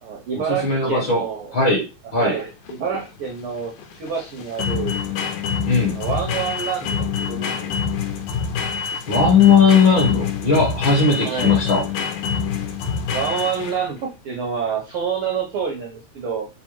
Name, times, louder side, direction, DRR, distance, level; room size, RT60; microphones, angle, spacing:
voice 1, 0.0-1.6 2.2-3.7 4.0-5.0 5.9-7.7 11.2-11.7 13.1-16.5, right 6 dB, 85° right, 0 dB, 1.2 m, -27 dB
voice 2, 0.6-1.2 1.5-1.8 2.1-2.3 5.6-6.0 9.1-11.8, left 5 dB, 55° left, -2 dB, 1.5 m, -17 dB
sound 1, 2.3-14.0, left 6 dB, 85° left, 1.9 m, -26 dB
4.8 x 2.1 x 2.9 m, 0.29 s
omnidirectional pair, 3.3 m